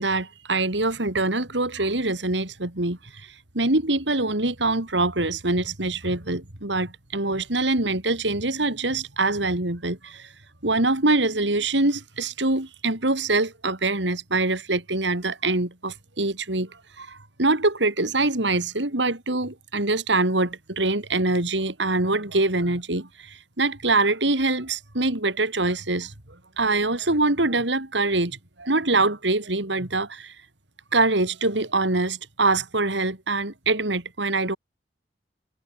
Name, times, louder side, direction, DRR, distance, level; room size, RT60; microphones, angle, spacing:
voice 1, 0.0-10.3 10.6-26.1 26.6-30.4 30.9-34.6, right 2 dB, 85° right, 3.6 m, -24 dB
head